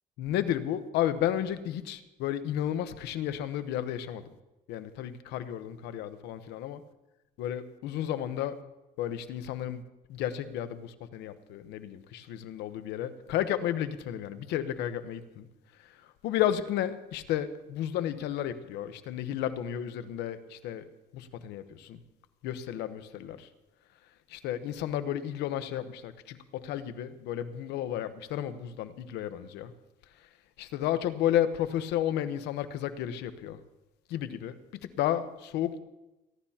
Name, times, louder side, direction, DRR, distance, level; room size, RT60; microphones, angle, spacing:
voice 1, 0.2-4.2 4.7-6.8 7.4-8.6 9.0-9.8 10.1-15.5 16.2-20.8 21.1-22.0 22.4-23.5 24.3-29.7 30.6-33.6 34.1-34.6 34.8-35.8, left 11 dB, 90° left, 11 dB, 1.0 m, -32 dB
28.0 x 12.0 x 2.9 m, 1.0 s
cardioid pair, 110°, 17 cm